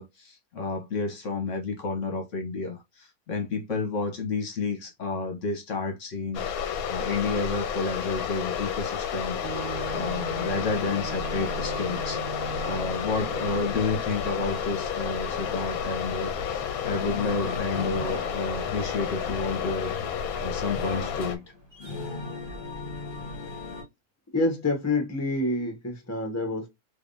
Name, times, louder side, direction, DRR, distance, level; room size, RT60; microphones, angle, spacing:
voice 1, 0.0-9.7 9.9-19.9 20.4-21.4, left 3 dB, 60° left, 1.1 m, -31 dB
sound 1, 6.3-21.4, left 8 dB, 75° left, 1.1 m, -31 dB
sound 2, 9.4-21.5, right 7 dB, 60° right, 0.6 m, -42 dB
sound 3, 16.6-23.8, left 2 dB, 35° left, 1.3 m, -39 dB
voice 2, 24.3-26.7, left 2 dB, 15° left, 0.9 m, -27 dB
3.4 x 3.1 x 2.5 m
omnidirectional pair, 1.6 m